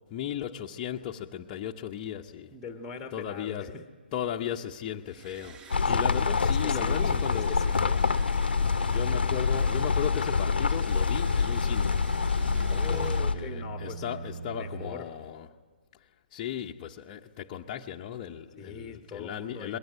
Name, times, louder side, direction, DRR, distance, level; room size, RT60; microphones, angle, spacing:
voice 1, 0.1-2.5 3.1-3.8 4.1-7.7 8.9-12.0 12.4-12.5 12.9-15.5 16.3-19.8, left 10 dB, 25° left, 0.7 m, -36 dB
voice 2, 2.5-3.8 5.8-8.1 12.7-14.0 14.6-15.1 18.6-19.8, left 5 dB, 5° left, 1.2 m, -41 dB
Liquid, 5.1-13.2, right 5 dB, 15° right, 7.8 m, -48 dB
sound 1, 5.7-13.4, left 5 dB, 70° left, 0.7 m, -26 dB
sound 2, 11.9-15.1, right 2 dB, 65° right, 2.6 m, -39 dB
23.5 x 21.5 x 8.8 m
figure-of-eight pair, 135°, 6 cm